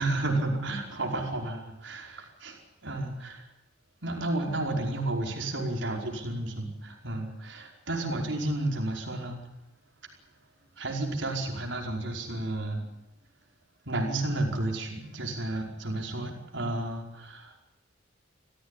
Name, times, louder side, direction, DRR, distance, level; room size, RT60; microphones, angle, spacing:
voice 1, 0.0-3.4 4.0-9.4 10.8-12.8 13.8-17.5, right 2 dB, 70° right, 1 dB, 5.1 m, -32 dB
27.0 x 16.0 x 9.9 m, 0.83 s
head